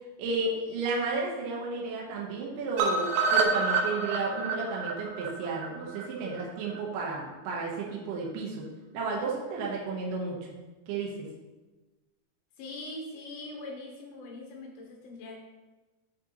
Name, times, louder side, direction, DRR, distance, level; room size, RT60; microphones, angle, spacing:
voice 1, 0.2-8.6 8.9-10.4 10.9-11.1, right 3 dB, 70° right, -3 dB, 2.4 m, -32 dB
sound 1, 2.8-6.8 7.1-7.2 7.5-7.6 7.9-8.0, right 4 dB, 85° right, 2.7 m, -28 dB
voice 2, 12.6-15.4, left 2 dB, 75° left, 0 dB, 2.7 m, -42 dB
10.0 x 4.3 x 2.9 m, 1.2 s
omnidirectional pair, 4.6 m